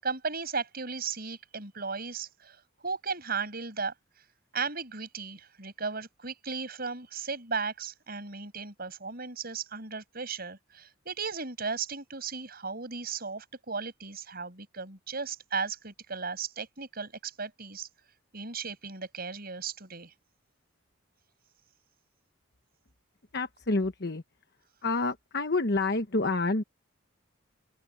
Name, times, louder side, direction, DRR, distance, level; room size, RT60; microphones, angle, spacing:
voice 1, 0.0-2.6 2.8-3.9 4.5-17.9 18.3-20.1, right 5 dB, 45° right, 6.8 m, -36 dB
voice 2, 23.3-24.2 24.8-26.6, left 3 dB, 55° left, 1.2 m, -28 dB
open air
head